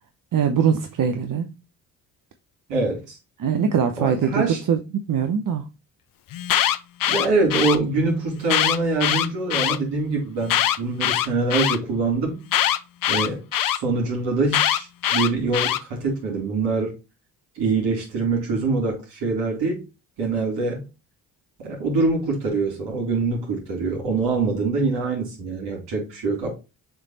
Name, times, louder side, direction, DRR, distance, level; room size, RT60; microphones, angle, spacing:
voice 1, 0.3-1.5 3.4-4.8 5.1-5.6, right 7 dB, 50° right, 0.9 m, -22 dB
voice 2, 2.7-3.2 4.0-4.6 7.1-12.4 13.1-13.4 13.7-16.9 17.6-19.8 20.2-20.8 21.6-26.5, right 3 dB, 70° right, 3.9 m, -24 dB
Alarm, 6.3-7.8 8.4-9.8 10.4-11.8 12.5-13.8 14.5-15.8, left 11 dB, 50° left, 0.7 m, -22 dB
7.0 x 3.5 x 4.1 m
hypercardioid pair, 50°, 43 cm